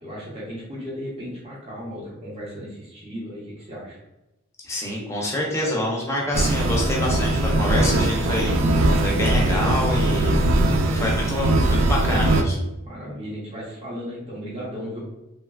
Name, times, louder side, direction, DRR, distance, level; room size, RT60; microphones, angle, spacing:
voice 1, 0.0-4.0 12.8-15.0, equal, 30° right, -6 dB, 0.7 m, -36 dB
voice 2, 4.6-8.6 9.0-12.6, left 1 dB, 15° left, -2 dB, 0.5 m, -26 dB
sound 1, 6.3-12.4, right 1 dB, 65° right, 0.3 m, -20 dB
2.9 x 2.2 x 2.3 m, 0.94 s
head